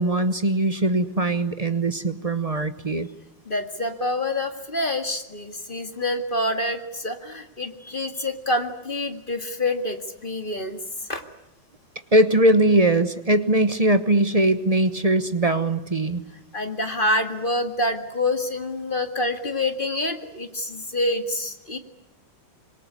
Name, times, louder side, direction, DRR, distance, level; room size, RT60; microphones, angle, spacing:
voice 1, 0.0-3.1 12.1-16.2, right 1 dB, 25° right, 11 dB, 0.9 m, -21 dB
voice 2, 3.5-10.8 11.1-11.2 16.5-21.8, left 1 dB, 25° left, 6 dB, 2.1 m, -27 dB
26.0 x 23.0 x 9.7 m, 0.85 s
omnidirectional pair, 2.1 m